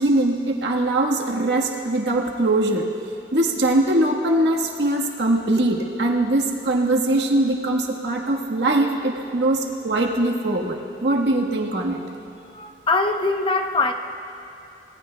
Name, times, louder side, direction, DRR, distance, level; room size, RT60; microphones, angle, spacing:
voice 1, 0.0-2.9 3.3-12.0, right 1 dB, 70° right, 0 dB, 1.4 m, -21 dB
voice 2, 12.5-13.9, left 3 dB, 30° left, 5 dB, 0.8 m, -22 dB
25.0 x 19.5 x 2.3 m, 2.9 s
head